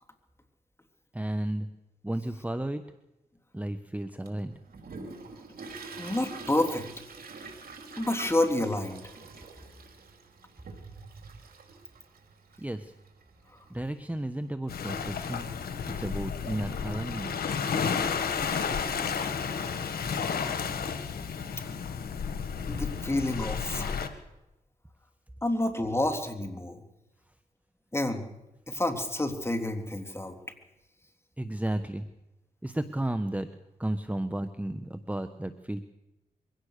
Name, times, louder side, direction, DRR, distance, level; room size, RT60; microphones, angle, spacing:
voice 1, 1.1-1.7 2.0-2.8 3.5-4.6 12.6-12.9 13.7-15.5 15.9-17.4 31.4-32.0 32.6-33.5 33.8-35.8, right 1 dB, 10° right, 10 dB, 1.2 m, -33 dB
Toilet flush, 4.3-14.5, right 4 dB, 75° right, 3.5 m, -46 dB
voice 2, 6.0-6.9 8.0-9.0 19.1-19.7 22.7-24.0 25.4-26.8 27.9-28.3 28.7-30.4, left 1 dB, 15° left, 4 dB, 3.4 m, -29 dB
Waves surf, 14.7-24.1, left 6 dB, 85° left, 1.8 m, -32 dB
23.0 x 17.0 x 6.7 m, 0.95 s
cardioid pair, 50°, 15 cm